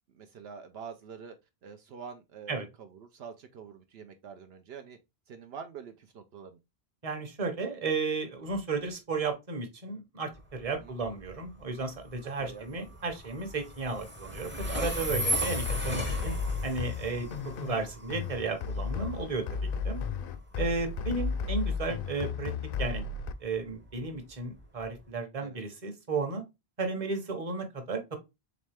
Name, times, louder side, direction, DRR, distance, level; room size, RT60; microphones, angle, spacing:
voice 1, 0.1-1.4 1.6-5.0 5.3-6.6 10.8-11.0 12.4-12.9 25.4-25.6, right 6 dB, 75° right, 0.8 m, -46 dB
voice 2, 7.0-16.3 16.6-19.4 19.8-20.0 20.6-22.5 22.8-23.0 23.4-26.4 26.8-28.2, right 3 dB, 35° right, 1.0 m, -34 dB
Train, 10.3-25.1, right 1 dB, 15° right, 0.6 m, -38 dB
sound 1, 14.6-23.3, left 5 dB, 65° left, 0.7 m, -34 dB
4.0 x 3.2 x 3.3 m
omnidirectional pair, 1.1 m